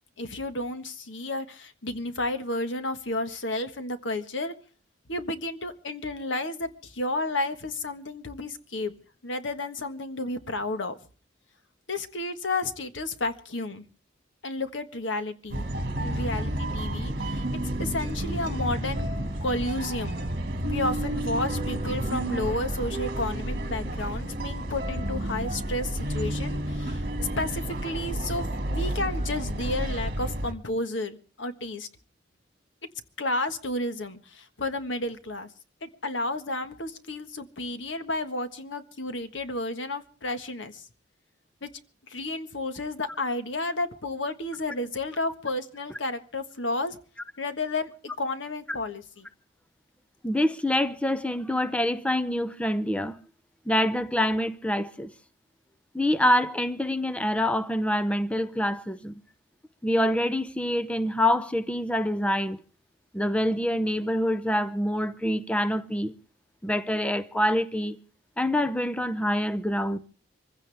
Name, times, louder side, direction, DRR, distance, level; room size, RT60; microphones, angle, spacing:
voice 1, 0.2-4.5 5.1-8.9 9.2-11.0 11.9-13.8 14.4-15.7 16.0-17.5 17.8-19.1 19.4-20.2 20.6-31.9 33.2-35.5 35.8-40.9 41.6-41.7 42.1-47.0 47.4-47.9 48.2-49.3, left 2 dB, 85° left, 1.5 m, -32 dB
sound 1, 15.5-30.5, right 1 dB, 55° right, 2.1 m, -30 dB
voice 2, 50.2-53.2 53.7-55.1 55.9-59.2 59.8-62.6 63.1-66.1 66.6-68.0 68.4-70.0, left 1 dB, 5° left, 0.7 m, -26 dB
24.5 x 16.0 x 3.5 m
head